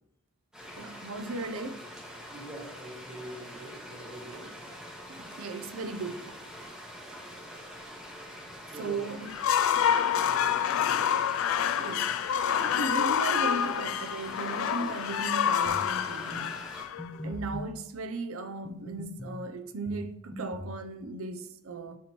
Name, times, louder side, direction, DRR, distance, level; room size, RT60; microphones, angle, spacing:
sound 1, 0.5-16.8, equal, 5° right, 1.7 m, -45 dB
voice 1, 0.8-1.8 5.1-6.4 8.8-9.3 11.8-12.2 12.5-16.5 17.2-22.0, right 3 dB, 80° right, 0.6 m, -36 dB
voice 2, 2.3-4.5 8.6-9.2 10.3-11.2, right 1 dB, 25° right, 1.8 m, -45 dB
sound 2, 9.3-17.4, left 8 dB, 70° left, 0.3 m, -27 dB
sound 3, 15.7-15.9 16.3-16.5 17.0-17.7 18.7-19.4 19.9-20.8, left 1 dB, 15° left, 0.8 m, -40 dB
10.5 x 4.4 x 3.0 m
head